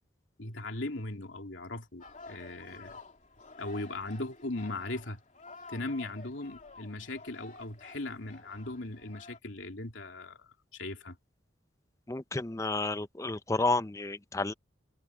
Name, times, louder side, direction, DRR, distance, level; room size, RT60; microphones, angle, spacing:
voice 1, 0.4-3.0 3.6-5.2 5.7-10.4 10.7-11.2, left 2 dB, 80° left, 3.0 m, -38 dB
sound 1, 2.0-9.4, left 3 dB, 40° left, 3.3 m, -51 dB
voice 2, 12.1-14.5, left 2 dB, 15° left, 0.5 m, -31 dB
head